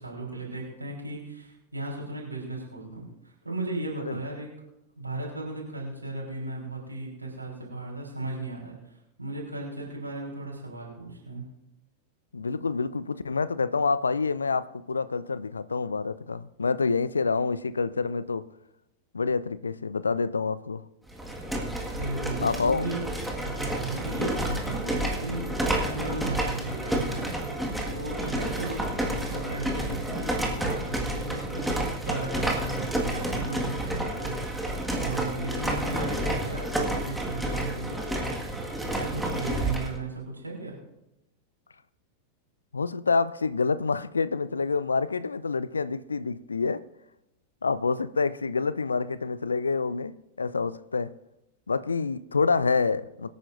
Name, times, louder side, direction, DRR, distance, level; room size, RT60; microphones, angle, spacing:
voice 1, 0.0-4.5 5.0-8.8 9.2-11.4 21.9-23.0 23.4-27.3 27.9-34.4 34.9-38.3 38.9-40.8, right 2 dB, 85° right, 3.9 m, -36 dB
voice 2, 12.3-18.5 19.1-20.8 22.4-22.9 42.7-46.8 47.6-51.1 51.7-53.3, left 4 dB, 75° left, 0.4 m, -27 dB
sound 1, 21.1-40.0, right 1 dB, 5° right, 1.7 m, -30 dB
23.5 x 9.3 x 2.6 m
figure-of-eight pair, 90°, 0 cm